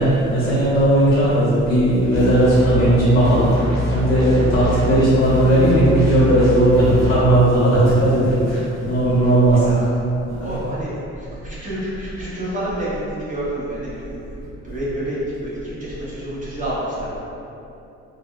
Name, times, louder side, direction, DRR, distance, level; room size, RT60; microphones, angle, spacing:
voice 1, 0.0-9.7 10.4-10.5, right 1 dB, 50° left, -10 dB, 1.3 m, -16 dB
sound 1, 2.1-2.9 3.2-4.9 5.2-7.2, left 2 dB, 70° left, 1.2 m, -25 dB
voice 2, 9.2-9.8 10.4-17.2, right 1 dB, 25° right, -9 dB, 1.0 m, -29 dB
3.4 x 2.3 x 2.3 m, 2.8 s
cardioid pair, 90°, 30 cm